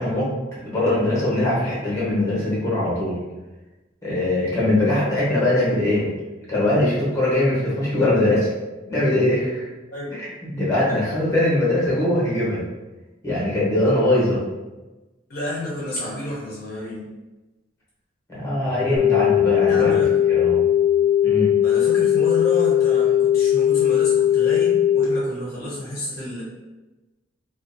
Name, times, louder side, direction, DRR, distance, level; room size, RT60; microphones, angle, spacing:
voice 1, 0.0-3.2 4.0-6.2 6.5-8.5 8.9-9.7 10.5-12.6 13.2-14.4 18.3-20.0 20.3-20.6 21.2-21.5, left 1 dB, 15° left, -8 dB, 0.8 m, -21 dB
voice 2, 15.3-17.1 19.7-20.2 21.6-26.4, left 1 dB, 50° left, -7 dB, 0.6 m, -30 dB
sound 1, 19.0-25.0, left 10 dB, 85° right, 0.7 m, -18 dB
2.4 x 2.2 x 2.5 m, 1.1 s
head